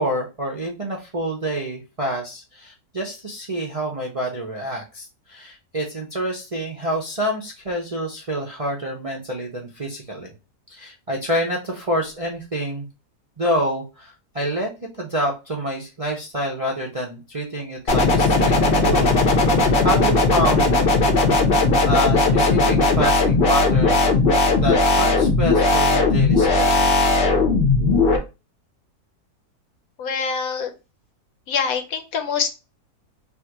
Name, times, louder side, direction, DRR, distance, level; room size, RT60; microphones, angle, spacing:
voice 1, 0.0-10.3 10.7-12.9 13.4-14.7 15.0-18.6 18.8-19.2 19.8-20.7 21.5-24.2 24.6-26.9, equal, 40° right, -2 dB, 0.5 m, -27 dB
sound 1, 17.9-28.2, left 3 dB, 45° left, 0.8 m, -17 dB
voice 2, 30.0-30.7 31.5-32.5, left 6 dB, 65° left, 6 dB, 1.1 m, -24 dB
3.5 x 2.5 x 4.5 m, 0.29 s
omnidirectional pair, 1.7 m